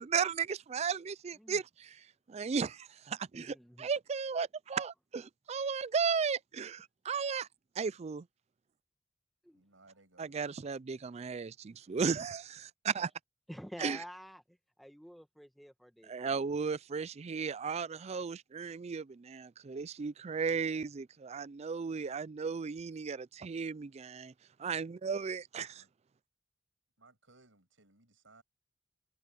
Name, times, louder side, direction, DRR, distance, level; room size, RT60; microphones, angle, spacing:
voice 1, 0.0-2.0 2.3-7.5 7.8-8.3 10.2-13.1 13.8-14.0 16.1-24.3 24.6-25.8, right 5 dB, 35° right, 0.4 m, -35 dB
voice 2, 3.3-3.9 9.4-9.7 13.5-16.5, equal, ahead, 1.4 m, -49 dB
voice 3, 9.5-10.6 25.8-25.9 27.0-28.4, right 3 dB, 85° right, 6.8 m, -63 dB
head